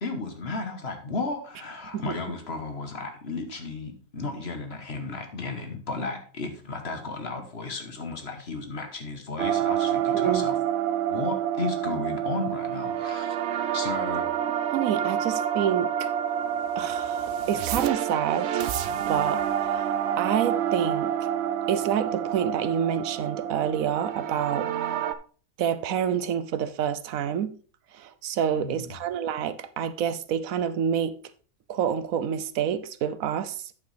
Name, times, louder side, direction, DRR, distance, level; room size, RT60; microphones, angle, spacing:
voice 1, 0.0-10.6 11.1-14.3 28.5-28.9, left 3 dB, 50° left, 1.5 m, -34 dB
sound 1, 9.4-25.1, right 9 dB, 65° right, 0.7 m, -28 dB
voice 2, 10.1-10.5 14.7-16.1 16.8-18.5 19.1-21.1 21.7-24.7 25.6-27.5 27.9-31.2 31.7-33.6, right 9 dB, 80° right, 1.1 m, -28 dB
8.6 x 7.5 x 3.4 m
omnidirectional pair, 1.4 m